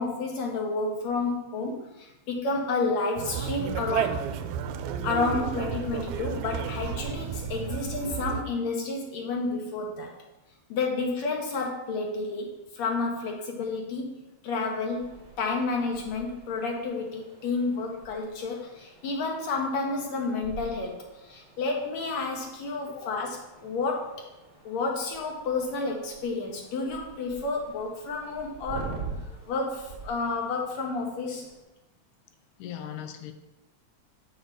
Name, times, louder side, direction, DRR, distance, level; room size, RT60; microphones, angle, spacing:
voice 1, 0.0-4.2 5.0-10.1 10.7-14.2 14.4-24.1 24.7-29.0 29.5-31.5, left 3 dB, 70° left, 0 dB, 2.1 m, -30 dB
Conversation, 3.2-8.4, right 8 dB, 85° right, 2.0 m, -32 dB
sound 1, 14.8-31.6, right 4 dB, 40° right, 1.8 m, -46 dB
voice 2, 32.6-33.3, left 9 dB, 85° left, 8 dB, 2.1 m, -39 dB
6.1 x 4.6 x 6.6 m, 0.98 s
omnidirectional pair, 3.4 m